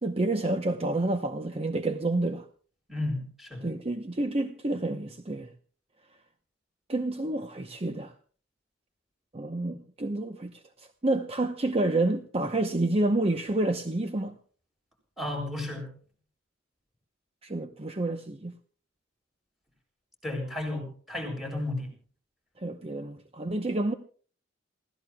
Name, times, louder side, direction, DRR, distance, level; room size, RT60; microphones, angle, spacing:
voice 1, 0.0-2.5 3.6-5.5 6.9-8.1 9.3-14.3 17.4-18.5 22.6-23.9, right 2 dB, 30° right, 0.9 m, -29 dB
voice 2, 2.9-3.7 15.2-15.9 20.2-21.9, left 1 dB, ahead, 7.9 m, -33 dB
28.0 x 16.5 x 2.3 m
head